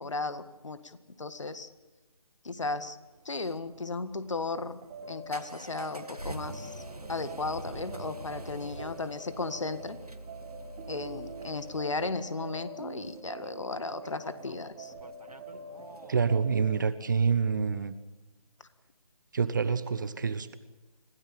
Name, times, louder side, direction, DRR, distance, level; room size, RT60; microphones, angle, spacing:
voice 1, 0.0-1.7 2.4-3.0 3.3-4.8 5.1-6.8 7.1-10.0 10.9-14.9, left 3 dB, 55° left, 12 dB, 1.7 m, -35 dB
sound 1, 3.1-16.9, right 2 dB, 90° right, 1.4 m, -46 dB
sound 2, 4.8-16.7, right 2 dB, 15° right, 1.1 m, -45 dB
voice 2, 16.1-18.0 19.3-20.6, right 5 dB, 30° right, 14 dB, 1.0 m, -27 dB
26.0 x 16.5 x 8.6 m, 1.1 s
figure-of-eight pair, 150°, 19 cm